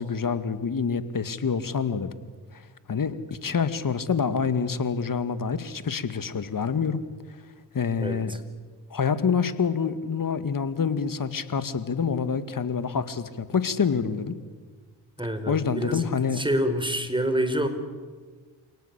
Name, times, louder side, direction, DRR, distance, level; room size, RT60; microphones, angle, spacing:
voice 1, 0.0-2.1 2.5-7.0 7.7-8.4 8.9-14.4 15.5-16.4, left 6 dB, 40° left, 12 dB, 2.3 m, -27 dB
voice 2, 8.0-8.4 15.2-17.7, equal, 10° right, 9 dB, 4.7 m, -27 dB
28.0 x 18.5 x 8.4 m, 1.5 s
hypercardioid pair, 45°, 48 cm